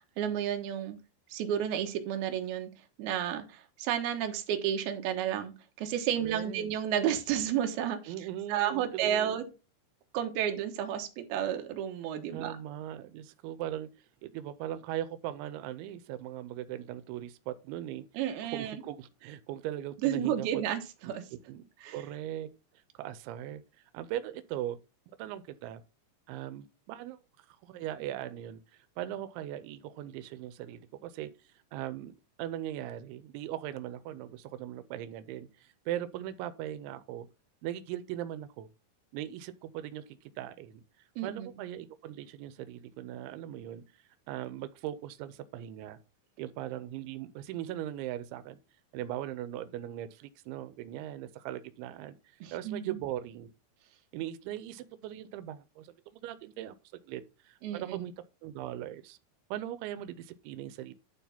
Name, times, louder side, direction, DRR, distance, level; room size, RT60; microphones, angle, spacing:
voice 1, 0.2-1.0 1.3-2.7 3.0-9.4 10.1-12.6 18.1-18.7 20.0-21.3 21.8-22.0 41.2-41.5 52.4-53.0 57.6-58.0, right 10 dB, 65° right, 3.0 m, -32 dB
voice 2, 6.2-6.7 8.1-9.4 12.3-13.9 14.2-18.0 18.4-20.6 21.0-21.6 21.9-22.5 23.0-23.6 23.9-24.8 25.2-25.8 26.3-27.2 27.5-31.3 31.7-37.3 37.6-38.7 39.1-40.8 41.2-43.8 44.3-46.0 46.4-48.6 48.9-52.2 52.5-53.5 54.1-55.9 56.2-56.8 57.1-58.1 58.4-59.2 59.5-60.9, right 12 dB, 90° right, 3.1 m, -39 dB
11.5 x 4.1 x 5.6 m
omnidirectional pair, 5.2 m